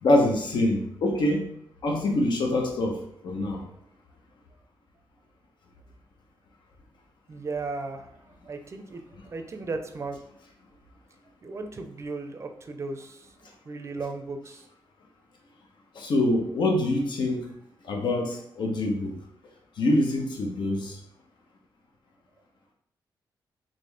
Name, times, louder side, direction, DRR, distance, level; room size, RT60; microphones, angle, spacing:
voice 1, 0.0-1.5 1.8-3.6 15.9-17.5 17.8-19.2 19.8-21.0, left 1 dB, 70° left, 1 dB, 0.9 m, -25 dB
voice 2, 7.3-8.1 8.4-10.2 11.4-13.3 13.7-14.6, right 3 dB, 35° right, 6 dB, 0.5 m, -36 dB
4.2 x 3.0 x 3.3 m, 0.72 s
cardioid pair, 120°, 8 cm